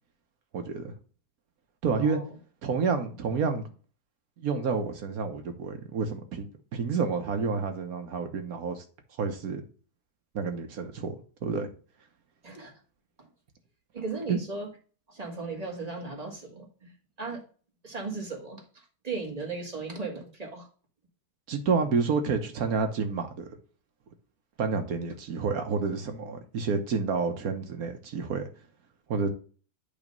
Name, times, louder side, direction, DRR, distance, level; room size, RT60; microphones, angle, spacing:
voice 1, 0.5-0.9 1.8-2.2 2.6-3.7 4.4-6.5 6.7-8.8 9.2-9.6 10.3-11.7 14.3-14.4 21.5-23.5 24.6-28.4 29.1-29.3, right 5 dB, 70° right, 1.5 m, -29 dB
voice 2, 2.0-2.3 12.4-12.7 13.2-13.3 13.9-14.7 15.1-16.9 17.2-17.4 17.8-20.7, right 3 dB, 25° right, 1.8 m, -37 dB
8.6 x 3.0 x 5.3 m
omnidirectional pair, 1.6 m